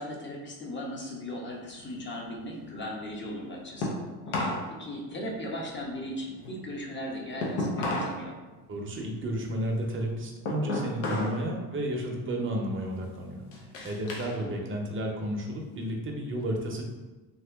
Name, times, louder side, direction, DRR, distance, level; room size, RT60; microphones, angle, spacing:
voice 1, 0.0-3.9 4.3-8.4 14.3-14.7, left 1 dB, 25° left, -1 dB, 0.8 m, -38 dB
sound 1, 1.6-4.7 5.0-8.2 8.6-11.4 11.8-12.2 12.7-14.4 14.7-15.9, left 1 dB, 90° left, 0.9 m, -34 dB
voice 2, 8.7-13.4 13.8-16.8, right 1 dB, 30° right, 1 dB, 0.7 m, -32 dB
2.9 x 2.9 x 3.4 m, 1.2 s
cardioid pair, 115°, 43 cm